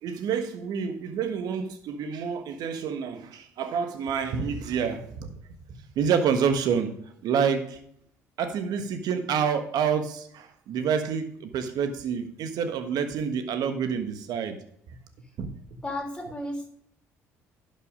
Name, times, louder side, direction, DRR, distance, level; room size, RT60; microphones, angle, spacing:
voice 1, 0.0-5.3 5.7-6.9 7.2-7.8 8.4-14.6 14.9-15.0 15.4-15.5, right 7 dB, 65° right, 1.3 m, -28 dB
voice 2, 15.8-16.7, left 1 dB, 15° left, 3.4 m, -33 dB
11.0 x 5.6 x 5.1 m
hypercardioid pair, 55°, 7 cm